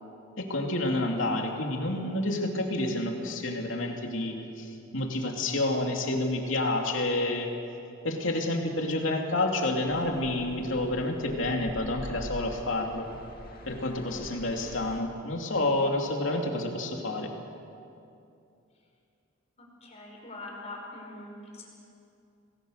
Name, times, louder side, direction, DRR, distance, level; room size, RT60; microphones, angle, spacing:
voice 1, 0.4-7.5 8.0-13.1 13.7-17.3, left 2 dB, 70° left, 1 dB, 3.0 m, -29 dB
sound 1, 9.9-15.0, left 1 dB, 50° left, 2.0 m, -45 dB
voice 2, 19.6-21.7, left 2 dB, 35° left, -1 dB, 5.8 m, -43 dB
28.0 x 20.0 x 6.7 m, 2.6 s
head